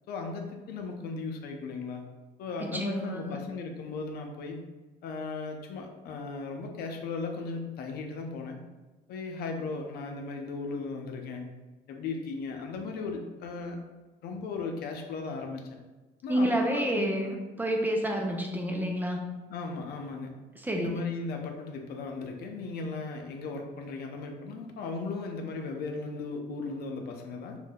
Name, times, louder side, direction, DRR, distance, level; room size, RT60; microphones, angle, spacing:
voice 1, 0.1-2.0 2.4-4.6 5.0-8.6 9.1-11.5 11.9-13.8 14.2-15.6 16.2-17.4 19.5-20.3 20.7-27.6, left 4 dB, 65° left, 3 dB, 0.5 m, -37 dB
voice 2, 2.6-3.4 16.3-19.3 20.6-21.0, right 1 dB, 10° right, 1 dB, 0.4 m, -29 dB
2.6 x 2.2 x 3.4 m, 1.2 s
cardioid pair, 110°, 17 cm